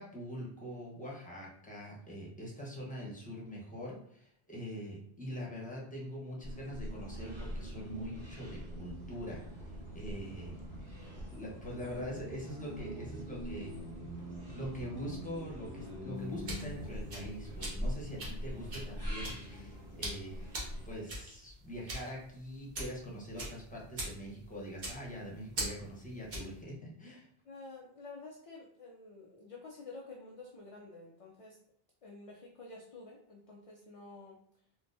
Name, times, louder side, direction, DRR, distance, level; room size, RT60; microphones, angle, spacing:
voice 1, 0.0-10.5 11.3-13.7 14.5-20.5 20.8-27.3, equal, 10° left, -4 dB, 0.8 m, -43 dB
sound 1, 6.4-20.9, equal, 20° right, 1.2 m, -43 dB
sound 2, 7.0-19.3 19.6-19.8, equal, 85° left, 1.1 m, -51 dB
sound 3, 16.2-26.6, right 1 dB, 50° right, 1.0 m, -43 dB
voice 2, 27.4-31.6 32.0-34.4, left 3 dB, 50° left, -3 dB, 0.4 m, -50 dB
3.7 x 2.3 x 2.6 m, 0.65 s
omnidirectional pair, 1.1 m